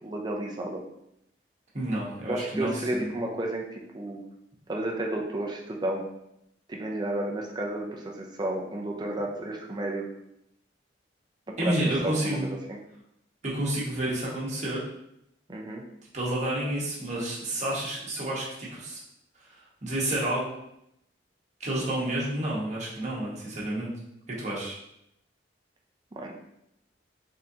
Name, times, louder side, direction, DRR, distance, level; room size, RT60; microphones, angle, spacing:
voice 1, 0.0-0.8 2.3-4.2 4.7-6.1 6.7-10.1 11.6-11.7 12.0-12.8 15.5-15.8 26.1-26.4, right 1 dB, 25° right, 0 dB, 0.5 m, -32 dB
voice 2, 1.7-3.1 11.6-12.5 13.4-14.9 16.1-19.0 19.4-20.6 21.6-23.9 24.4-24.8, right 1 dB, 40° right, -5 dB, 1.2 m, -30 dB
4.1 x 3.7 x 2.8 m, 0.79 s
head